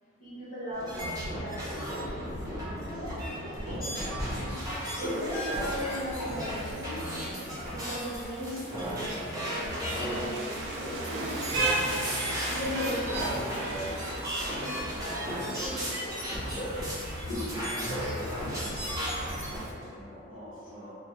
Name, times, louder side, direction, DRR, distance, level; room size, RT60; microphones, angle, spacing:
voice 1, 0.2-1.6 2.1-7.3 7.6-11.5 12.1-15.8, equal, 40° left, -11 dB, 1.1 m, -39 dB
sound 1, 0.7-19.6, equal, 15° right, 0.8 m, -34 dB
Rain, 4.6-19.7, right 2 dB, 60° right, 0.4 m, -38 dB
sound 2, 12.7-14.4 15.0-17.0, equal, 20° left, 1.0 m, -48 dB
voice 2, 17.2-21.0, left 1 dB, 75° left, -9 dB, 0.8 m, -41 dB
3.3 x 2.1 x 3.1 m, 2.5 s
head